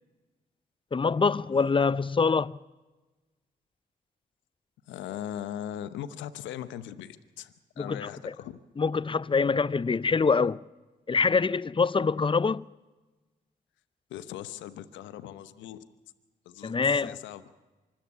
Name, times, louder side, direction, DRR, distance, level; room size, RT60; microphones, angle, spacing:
voice 1, 0.9-2.6 7.8-8.3 8.8-10.6 11.1-12.6 16.6-17.2, left 5 dB, 25° left, 0.6 m, -25 dB
voice 2, 4.9-8.6 14.1-15.8 16.4-17.4, left 10 dB, 90° left, 0.9 m, -39 dB
25.0 x 13.5 x 8.4 m
supercardioid pair, 45°, 19 cm